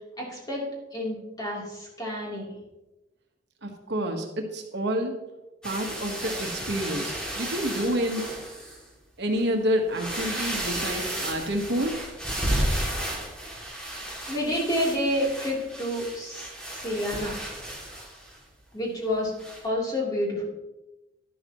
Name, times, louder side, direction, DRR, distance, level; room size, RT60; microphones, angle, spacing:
voice 1, 0.2-0.6 0.9-2.5 14.3-17.3 18.7-20.5, equal, 20° left, -4 dB, 3.4 m, -29 dB
voice 2, 3.6-5.1 5.6-8.2 9.2-12.0, equal, 60° right, 3 dB, 1.4 m, -28 dB
sound 1, 5.6-8.8 9.4-9.5 9.9-18.4 19.4-19.6, right 1 dB, 5° left, 2.5 m, -33 dB
11.5 x 11.0 x 3.0 m, 1.0 s
head